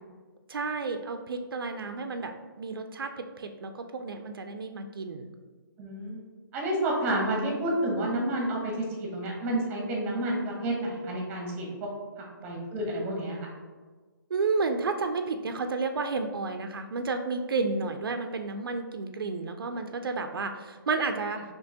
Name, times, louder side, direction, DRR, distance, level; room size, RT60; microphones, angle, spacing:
voice 1, 0.5-5.3 14.3-21.4, right 4 dB, 85° right, 6 dB, 0.4 m, -31 dB
voice 2, 5.8-6.2 6.5-11.9 12.2-13.5, right 1 dB, 15° right, -1 dB, 0.8 m, -30 dB
4.4 x 2.9 x 2.7 m, 1.4 s
hypercardioid pair, 155°, 12 cm